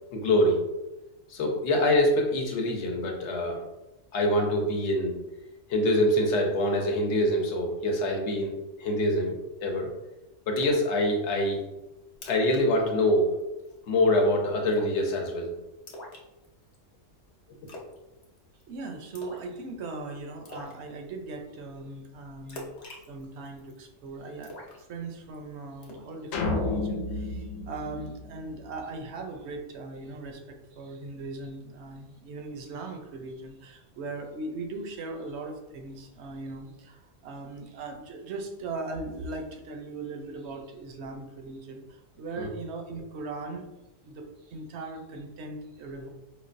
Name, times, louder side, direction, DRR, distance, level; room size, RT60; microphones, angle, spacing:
voice 1, 0.1-0.6 1.3-3.6 4.1-5.2 5.7-8.5 8.8-9.4 9.6-9.9 10.5-11.6 12.3-13.3 13.9-15.5 42.4-42.5, left 1 dB, 65° left, 2 dB, 1.0 m, -25 dB
Splash splatter, 10.6-10.9 11.3-11.4 11.8-11.9 12.1-12.6 12.9-13.1 13.4-13.8 14.7-15.0 15.9-16.7 17.7-18.0 18.2-18.6 19.1-19.5 19.8-19.9 20.4-20.7 22.5-23.8 24.4-25.3 25.8-26.1, left 1 dB, 45° left, 0.6 m, -43 dB
voice 2, 18.7-22.7 23.1-43.7 44.0-46.1, right 3 dB, 65° right, 4 dB, 0.8 m, -39 dB
sound 1, 26.3-28.8, left 2 dB, 90° left, 1.0 m, -31 dB
5.1 x 2.1 x 2.5 m, 0.98 s
omnidirectional pair, 1.3 m